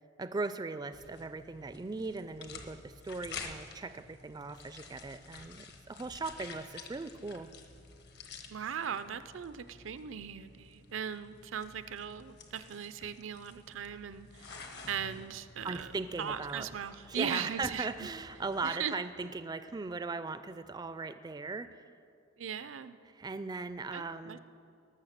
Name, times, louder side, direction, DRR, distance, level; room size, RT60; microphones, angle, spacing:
voice 1, 0.2-7.5 15.6-16.7 17.1-21.8 23.1-24.4, right 3 dB, 20° right, 11 dB, 0.3 m, -38 dB
sound 1, 0.9-18.7, left 4 dB, 60° left, 1.0 m, -51 dB
voice 2, 8.5-14.6 14.9-15.9 16.2-18.1 18.6-19.0 22.4-23.0 23.9-24.4, right 8 dB, 80° right, 13 dB, 0.5 m, -39 dB
18.5 x 6.5 x 6.6 m, 2.4 s
head